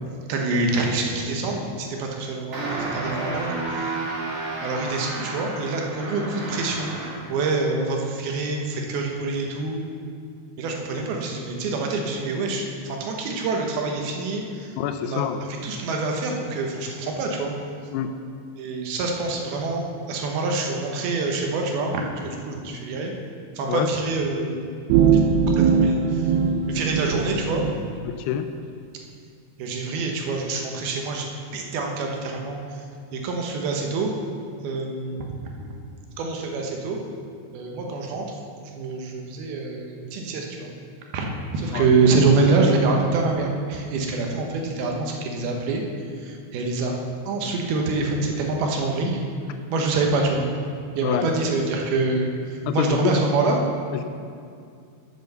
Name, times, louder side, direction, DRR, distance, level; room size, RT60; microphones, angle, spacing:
voice 1, 0.3-3.5 4.6-7.0 7.3-9.8 10.6-14.7 15.0-15.2 15.6-17.5 18.6-23.1 23.6-24.6 25.1-26.3 26.7-27.6 29.6-32.6 33.1-34.1 34.6-35.2 35.6-35.7 36.2-37.0 37.5-38.4 38.6-40.8 41.1-45.8 46.2-46.9 47.3-49.2 49.7-50.5 51.0-53.6, right 3 dB, 75° right, 1 dB, 2.7 m, -25 dB
sound 1, 2.5-7.4, right 2 dB, 55° right, 3.3 m, -31 dB
voice 2, 14.8-15.4 17.9-18.1 23.6-23.9 28.1-28.5 41.7-41.9 51.0-51.3 52.7-53.2 53.9-54.0, left 10 dB, 85° left, 8 dB, 2.6 m, -26 dB
sound 2, 24.9-27.7, right 6 dB, 90° right, 2.1 m, -20 dB
8.0 x 7.0 x 6.7 m, 2.3 s
omnidirectional pair, 4.8 m